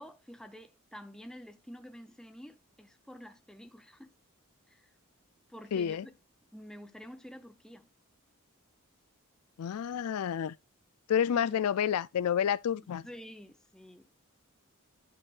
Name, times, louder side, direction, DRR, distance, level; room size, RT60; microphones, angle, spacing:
voice 1, 0.0-4.1 4.7-4.9 5.5-6.1 6.5-7.9 11.3-11.6 12.8-14.1, equal, 5° left, 0.8 m, -49 dB
voice 2, 5.7-6.1 9.6-10.6 11.1-13.1, left 8 dB, 85° left, 0.4 m, -29 dB
11.0 x 6.1 x 2.4 m
head